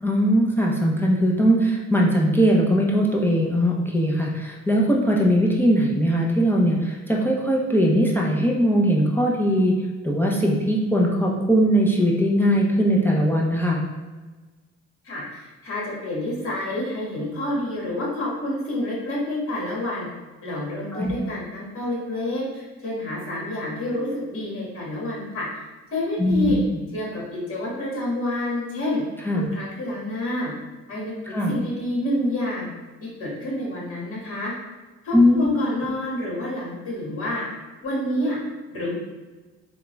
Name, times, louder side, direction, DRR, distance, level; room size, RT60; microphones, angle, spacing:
voice 1, 0.0-9.8 10.0-13.8 20.9-21.1 26.2-26.5 29.3-29.5 31.3-31.5 35.1-35.5, equal, 5° left, -3 dB, 0.5 m, -20 dB
voice 2, 15.0-20.1 20.4-25.5 25.9-26.6 26.9-29.0 29.5-30.5 30.9-32.7 33.0-34.5 35.0-37.4 37.8-38.4 38.7-38.9, left 1 dB, 45° left, -5 dB, 1.5 m, -28 dB
3.6 x 2.3 x 3.0 m, 1.3 s
cardioid pair, 90°, 30 cm